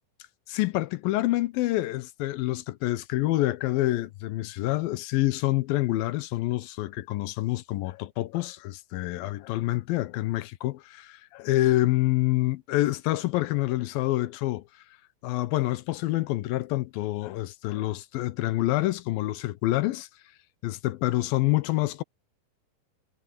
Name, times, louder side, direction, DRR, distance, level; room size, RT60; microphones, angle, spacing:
voice 1, 0.5-14.6 15.2-20.1 20.6-22.0, left 17 dB, 85° left, 2.6 m, -27 dB
omnidirectional pair, 4.1 m